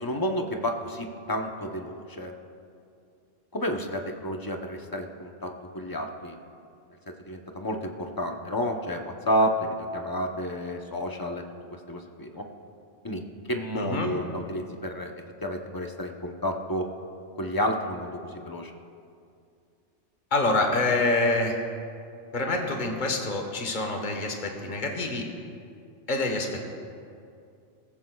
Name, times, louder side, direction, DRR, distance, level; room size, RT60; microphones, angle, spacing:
voice 1, 0.0-2.3 3.5-6.4 7.3-11.4 11.9-12.5 13.0-13.2 13.5-15.1 15.4-16.9 17.4-18.2 18.4-18.7, equal, 20° left, 2 dB, 0.8 m, -30 dB
voice 2, 13.7-14.1 20.3-21.6 22.3-25.2 26.1-26.6, left 2 dB, 40° left, 2 dB, 1.3 m, -26 dB
17.5 x 15.0 x 2.4 m, 2.4 s
omnidirectional pair, 1.2 m